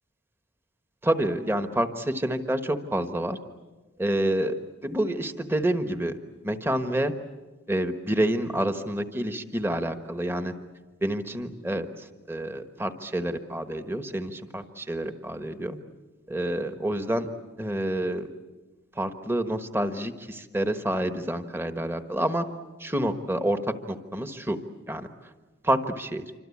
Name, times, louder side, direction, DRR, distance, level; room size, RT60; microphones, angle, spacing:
voice 1, 1.0-3.4 4.0-4.6 4.8-6.2 6.4-7.1 7.7-10.5 11.0-11.9 12.3-15.8 16.3-17.3 17.6-18.3 19.0-22.5 22.8-24.6 24.9-25.1 25.6-26.2, right 1 dB, 10° right, 8 dB, 1.3 m, -28 dB
27.0 x 26.0 x 8.5 m, 1.2 s
head